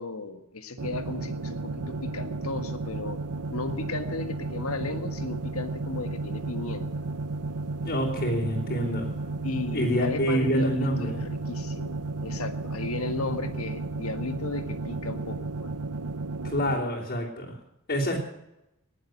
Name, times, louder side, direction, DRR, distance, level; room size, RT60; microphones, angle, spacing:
voice 1, 0.0-3.2 3.5-7.0 9.4-15.7, left 3 dB, 70° left, 9 dB, 1.7 m, -35 dB
sound 1, 0.8-16.8, right 3 dB, 85° right, 0.9 m, -33 dB
voice 2, 7.8-9.2 9.7-11.2 16.4-17.6 17.9-18.2, equal, 45° left, -6 dB, 3.5 m, -27 dB
20.0 x 7.8 x 9.2 m, 0.89 s
head